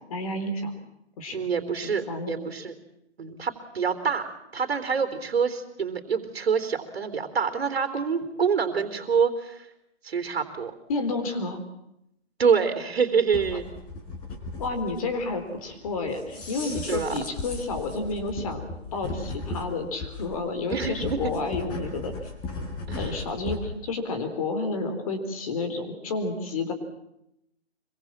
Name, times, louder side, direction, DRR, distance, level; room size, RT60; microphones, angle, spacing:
voice 1, 0.1-0.7 1.2-1.5 1.8-2.4 10.9-11.6 14.6-18.6 18.9-22.1 23.0-26.7, left 3 dB, 30° left, 7 dB, 3.9 m, -30 dB
voice 2, 1.3-2.7 3.2-9.7 10.0-10.7 12.4-13.7 16.9-17.2 20.7-21.3 22.9-23.3, right 6 dB, 60° right, 8 dB, 3.6 m, -26 dB
sound 1, 13.3-23.7, left 2 dB, 15° left, 4.2 m, -36 dB
26.0 x 23.5 x 7.5 m, 0.81 s
hypercardioid pair, 170°, 34 cm